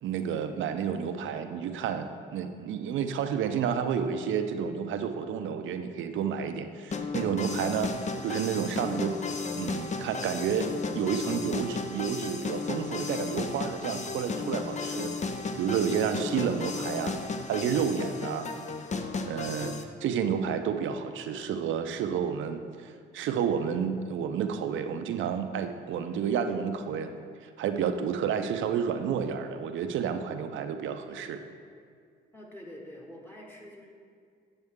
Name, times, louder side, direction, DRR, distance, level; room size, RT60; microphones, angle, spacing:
voice 1, 0.0-7.9 8.2-9.2 9.5-15.1 15.6-17.1 17.5-18.5 19.3-27.1 27.4-31.4, right 7 dB, 75° right, 7 dB, 0.6 m, -30 dB
sound 1, 6.9-19.8, left 4 dB, 35° left, 0.6 m, -34 dB
voice 2, 32.3-33.9, left 1 dB, 10° left, -1 dB, 1.3 m, -46 dB
7.9 x 7.2 x 3.6 m, 2.2 s
cardioid pair, 90°, 20 cm